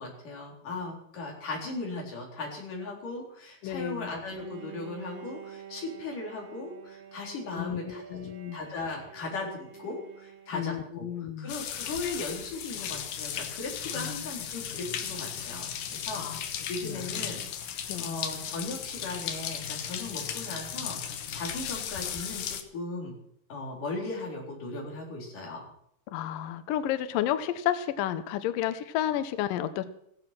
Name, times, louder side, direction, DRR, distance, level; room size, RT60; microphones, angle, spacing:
voice 1, 0.0-8.2 8.5-23.1 23.5-25.6, left 3 dB, 50° left, -1 dB, 5.3 m, -38 dB
voice 2, 3.6-4.1 7.5-8.6 10.5-11.5 14.0-14.1 16.1-16.4 16.8-17.0 17.9-18.2 26.1-29.9, left 11 dB, 85° left, 11 dB, 1.9 m, -31 dB
Bowed string instrument, 4.2-11.0, right 9 dB, 60° right, 3.1 m, -48 dB
sound 1, 11.5-22.6, left 9 dB, 65° left, 2.4 m, -36 dB
16.0 x 14.5 x 5.9 m, 0.70 s
omnidirectional pair, 5.2 m